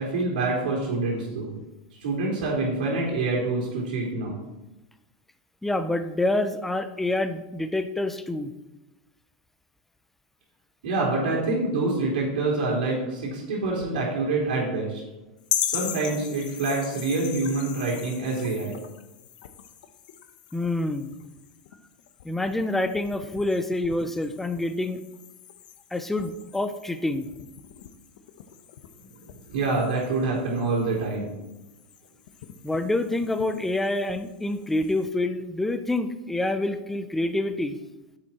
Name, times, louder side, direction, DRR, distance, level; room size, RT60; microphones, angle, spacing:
voice 1, 0.0-1.5 2.0-4.4 10.8-15.0 15.6-18.8 29.5-31.3, right 3 dB, 80° right, -4 dB, 3.7 m, -26 dB
voice 2, 5.6-8.5 20.5-21.2 22.2-25.0 25.9-27.3 32.6-37.8, left 2 dB, 5° left, 9 dB, 0.7 m, -27 dB
sound 1, 15.4-35.1, left 10 dB, 70° left, 1.0 m, -39 dB
9.9 x 7.7 x 4.4 m, 1.0 s
supercardioid pair, 125°, 5 cm